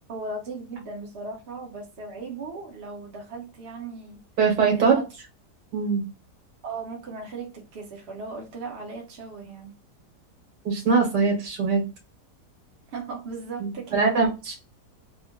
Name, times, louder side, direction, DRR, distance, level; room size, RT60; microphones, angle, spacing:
voice 1, 0.1-4.2 4.7-5.2 6.6-9.7 12.9-14.3, right 3 dB, 45° right, 1.1 m, -37 dB
voice 2, 4.4-5.0 5.7-6.0 10.7-11.8 13.6-14.6, right 5 dB, 75° right, 1.9 m, -22 dB
3.8 x 2.1 x 3.6 m
omnidirectional pair, 1.8 m